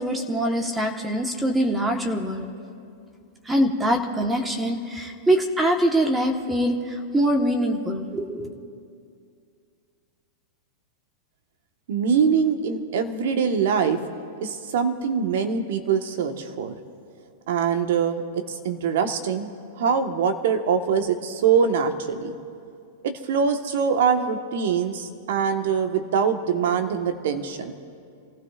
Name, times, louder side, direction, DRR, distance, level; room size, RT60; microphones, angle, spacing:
voice 1, 0.0-2.5 3.4-8.5, right 1 dB, 10° right, 3 dB, 1.3 m, -23 dB
voice 2, 11.9-14.0 14.4-16.8 17.5-19.5 19.8-22.4 23.0-27.7, right 6 dB, 70° right, 6 dB, 1.3 m, -23 dB
28.0 x 15.5 x 2.5 m, 2.4 s
hypercardioid pair, 110°, 0 cm